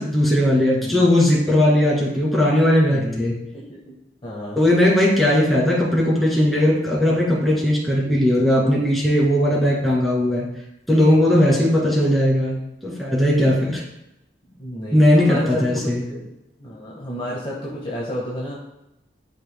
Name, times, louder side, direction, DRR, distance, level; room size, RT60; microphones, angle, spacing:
voice 1, 0.0-3.4 4.6-10.5 10.9-12.6 12.8-13.8 14.9-16.0, left 1 dB, ahead, -5 dB, 2.4 m, -18 dB
voice 2, 0.7-1.1 2.9-4.0 4.2-4.6 14.6-15.8 16.1-16.3 16.6-18.6, equal, 30° left, -5 dB, 1.5 m, -31 dB
12.0 x 5.0 x 2.2 m, 0.86 s
head